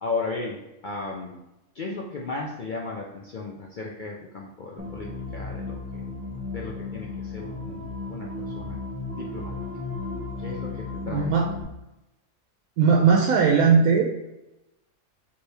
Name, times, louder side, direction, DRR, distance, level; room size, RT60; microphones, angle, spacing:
voice 1, 0.0-1.4 1.7-6.0 6.5-8.8 9.2-9.5 10.4-11.4, left 3 dB, 70° left, -2 dB, 0.4 m, -35 dB
sound 1, 4.8-11.6, left 3 dB, 15° right, 0.7 m, -35 dB
voice 2, 11.1-11.5 12.8-14.1, right 5 dB, 80° right, 1 dB, 1.0 m, -19 dB
4.4 x 3.1 x 3.3 m, 0.95 s
omnidirectional pair, 1.5 m